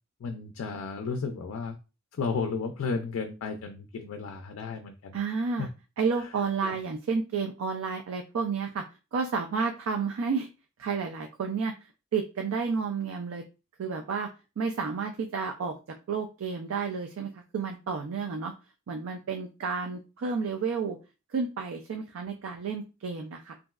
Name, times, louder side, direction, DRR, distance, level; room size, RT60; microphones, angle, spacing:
voice 1, 0.2-1.8 2.1-5.2 5.6-5.7 6.6-6.8, left 4 dB, 75° left, 5 dB, 0.3 m, -33 dB
voice 2, 5.1-5.7 6.0-8.8 9.1-10.5 10.8-13.4 13.8-14.3 14.6-15.8 16.1-18.5 18.9-21.0 21.3-23.5, right 5 dB, 80° right, 4 dB, 0.4 m, -31 dB
2.9 x 2.5 x 2.3 m, 0.31 s
head